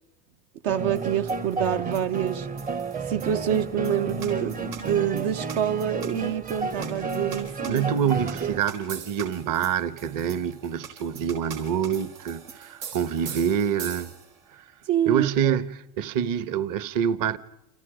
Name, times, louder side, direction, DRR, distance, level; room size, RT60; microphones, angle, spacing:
voice 1, 0.6-2.5 3.1-8.1 8.4-8.6 14.9-15.6, right 10 dB, 60° right, 1.2 m, -27 dB
sound 1, 0.7-8.6, right 3 dB, 15° right, 0.8 m, -32 dB
sound 2, 1.0-14.5, right 7 dB, 90° right, 6.9 m, -43 dB
voice 2, 7.7-14.1 14.5-14.6 15.0-17.4, right 8 dB, 40° right, 1.3 m, -26 dB
29.5 x 28.0 x 5.1 m
supercardioid pair, 120°, 48 cm